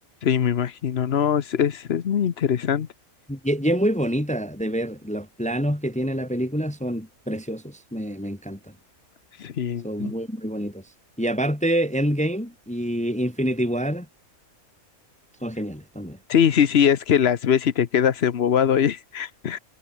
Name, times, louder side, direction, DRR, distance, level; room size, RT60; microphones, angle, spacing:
voice 1, 0.2-2.9 9.4-10.1 16.3-19.6, left 8 dB, 50° left, 1.0 m, -22 dB
voice 2, 3.3-8.6 9.8-10.8 11.2-14.1 15.4-16.2, equal, 5° left, 1.6 m, -26 dB
omnidirectional pair, 1.5 m